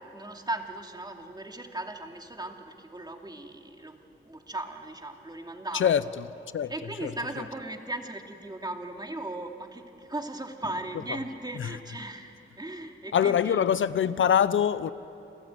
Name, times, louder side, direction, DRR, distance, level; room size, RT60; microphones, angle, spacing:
voice 1, 0.0-5.9 6.7-13.6, right 2 dB, 20° right, 2.7 m, -37 dB
voice 2, 13.1-14.9, left 8 dB, 65° left, 0.6 m, -23 dB
28.0 x 15.0 x 9.5 m
cardioid pair, 60°, 21 cm